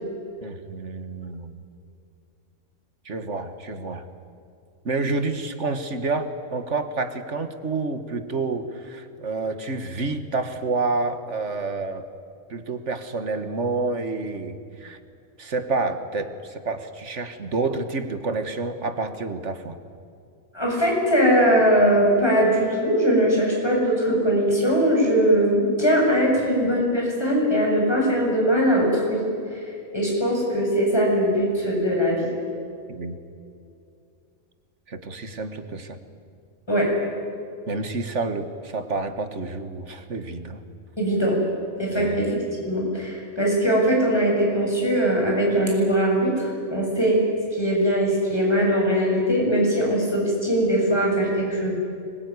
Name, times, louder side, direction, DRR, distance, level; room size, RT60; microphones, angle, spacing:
voice 1, 0.4-1.6 3.1-4.0 4.9-12.0 12.5-15.0 15.4-19.8 32.9-33.2 34.9-36.0 37.7-40.6 41.9-42.3, right 3 dB, 60° right, 8 dB, 1.9 m, -29 dB
voice 2, 20.5-29.2 29.5-29.6 29.9-32.3 36.7-36.9 41.0-41.4 41.8-47.2 47.5-51.7, equal, 20° left, -1 dB, 7.6 m, -21 dB
25.5 x 22.0 x 9.8 m, 2.5 s
omnidirectional pair, 1.4 m